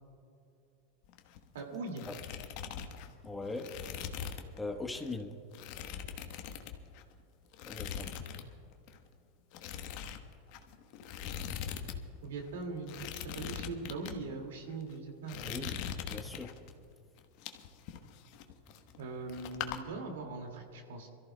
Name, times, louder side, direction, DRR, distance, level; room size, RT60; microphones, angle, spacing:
sound 1, 1.0-1.6 1.9-4.6 4.9-5.1 5.5-7.1 7.5-8.5 8.7-9.0 9.5-12.0 12.2-12.3 12.8-14.2 14.7-14.9 15.3-16.7 17.2-19.0 19.3-19.8, left 8 dB, 60° left, 1.1 m, -41 dB
voice 1, 1.5-2.1 12.2-15.7 19.0-21.1, right 3 dB, 80° right, 3 dB, 2.2 m, -41 dB
voice 2, 3.2-3.7 4.6-5.4 7.7-8.1 15.4-15.8 16.0-16.5, left 3 dB, 10° left, 5 dB, 1.1 m, -40 dB
27.0 x 14.5 x 2.2 m, 2.7 s
hypercardioid pair, 100°, 0 cm